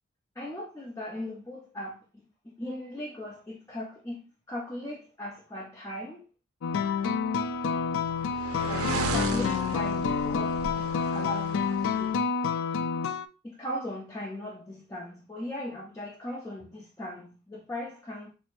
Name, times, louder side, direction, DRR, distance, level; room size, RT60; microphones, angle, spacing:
voice 1, 0.4-6.3 8.6-12.2 13.4-18.3, left 1 dB, 15° left, 0.5 m, -38 dB
sound 1, 6.6-13.3, left 6 dB, 65° left, 0.3 m, -28 dB
sound 2, 7.2-12.1, right 4 dB, 80° right, 0.5 m, -35 dB
5.9 x 2.0 x 2.5 m
head